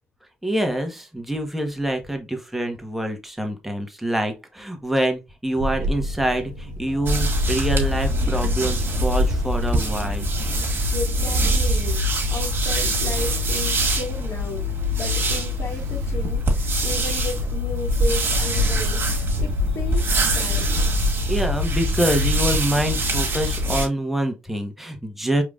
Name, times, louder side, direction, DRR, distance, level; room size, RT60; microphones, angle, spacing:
voice 1, 0.4-10.3 21.3-25.4, right 1 dB, 5° right, 1.3 m, -26 dB
sound 1, 5.5-22.3, left 7 dB, 85° left, 1.9 m, -42 dB
Bird / Wind, 5.6-22.6, equal, 70° right, 0.8 m, -30 dB
sound 2, 7.1-23.9, equal, 45° right, 1.8 m, -23 dB
voice 2, 10.9-20.7, left 3 dB, 55° left, 1.9 m, -34 dB
4.8 x 3.5 x 2.5 m
hypercardioid pair, 45°, 5 cm